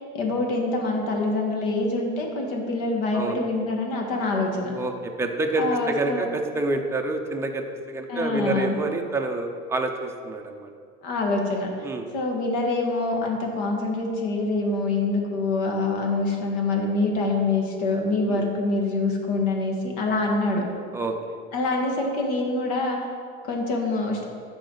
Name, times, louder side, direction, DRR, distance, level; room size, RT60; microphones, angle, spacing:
voice 1, 0.1-4.8 5.6-6.3 8.1-8.8 11.0-11.9 12.1-20.6 21.5-23.0 23.4-24.3, left 2 dB, 75° left, 1 dB, 1.7 m, -25 dB
voice 2, 3.1-3.5 4.8-10.7 11.8-12.1 18.3-18.5 20.9-21.4, right 2 dB, 10° right, 3 dB, 0.5 m, -28 dB
14.0 x 4.9 x 3.9 m, 2.2 s
cardioid pair, 165°, 30 cm